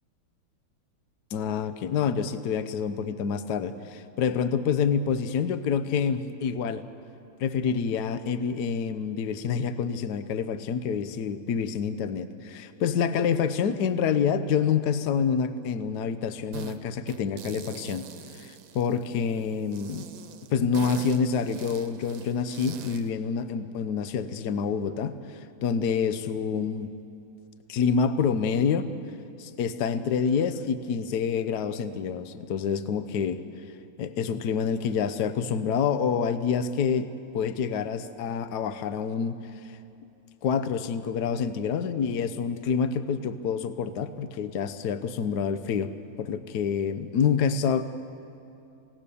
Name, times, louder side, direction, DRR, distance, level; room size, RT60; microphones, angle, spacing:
voice 1, 1.3-6.8 7.4-18.0 18.3-20.1 20.5-26.9 27.7-28.9 29.4-33.4 34.0-39.4 39.6-39.8 40.4-45.9 46.2-47.8, left 6 dB, 60° left, 12 dB, 1.3 m, -27 dB
sound 1, 16.5-16.8 17.1-19.2 19.7-23.1, right 8 dB, 75° right, 1.7 m, -43 dB
28.0 x 17.5 x 7.0 m, 2.6 s
omnidirectional pair, 2.3 m